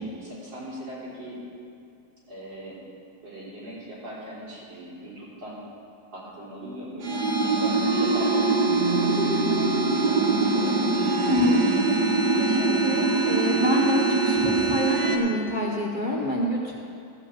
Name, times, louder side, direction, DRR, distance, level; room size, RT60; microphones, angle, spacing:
voice 1, 0.0-1.4 2.3-2.8 3.2-5.6 6.1-8.6 8.9-9.2 10.1-11.8, equal, 85° right, -8 dB, 4.2 m, -39 dB
sound 1, 7.0-15.2, right 3 dB, 65° right, 1.5 m, -23 dB
voice 2, 11.3-11.6 12.4-16.6, left 1 dB, 35° left, -3 dB, 0.8 m, -27 dB
14.5 x 5.1 x 7.4 m, 2.5 s
omnidirectional pair, 2.0 m